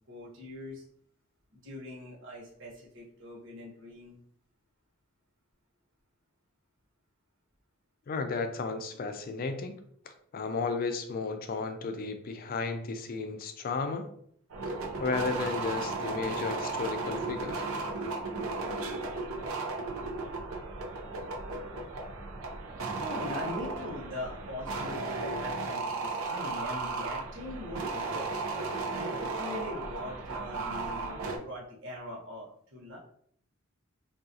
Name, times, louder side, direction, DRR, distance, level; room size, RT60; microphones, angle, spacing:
voice 1, 0.1-0.8 1.5-4.1 23.0-28.3 28.9-33.0, left 1 dB, 65° right, -4 dB, 1.0 m, -41 dB
voice 2, 8.1-9.8 10.0-14.1 15.0-17.6, left 4 dB, 45° left, 8 dB, 0.4 m, -33 dB
sound 1, 14.5-31.4, right 3 dB, 80° right, 0.5 m, -35 dB
3.6 x 2.3 x 2.7 m, 0.64 s
head